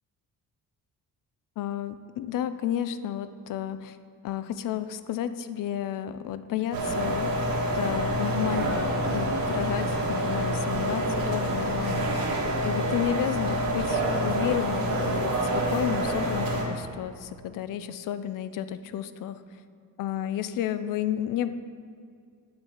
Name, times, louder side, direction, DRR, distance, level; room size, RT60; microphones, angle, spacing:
voice 1, 1.6-4.0 4.2-7.4 7.7-12.3 12.6-19.4 20.0-21.5, left 10 dB, 65° left, 12 dB, 0.5 m, -32 dB
sound 1, 6.7-16.6, right 1 dB, 80° right, 1.7 m, -27 dB
11.0 x 4.1 x 7.0 m, 2.2 s
cardioid pair, 165°, 35 cm